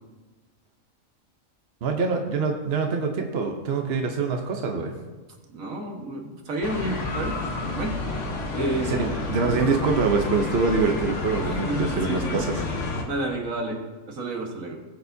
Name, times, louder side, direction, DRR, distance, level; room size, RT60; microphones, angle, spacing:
voice 1, 1.8-4.9 8.8-12.6, right 4 dB, 50° right, 3 dB, 1.0 m, -25 dB
voice 2, 5.5-7.4 7.8-8.0 8.5-9.0 11.5-12.5 13.1-13.8 14.1-14.8, right 2 dB, 70° right, 0 dB, 1.9 m, -30 dB
sound 1, 6.6-13.0, left 3 dB, 60° left, 1.5 m, -30 dB
20.0 x 6.7 x 2.7 m, 1.2 s
omnidirectional pair, 1.4 m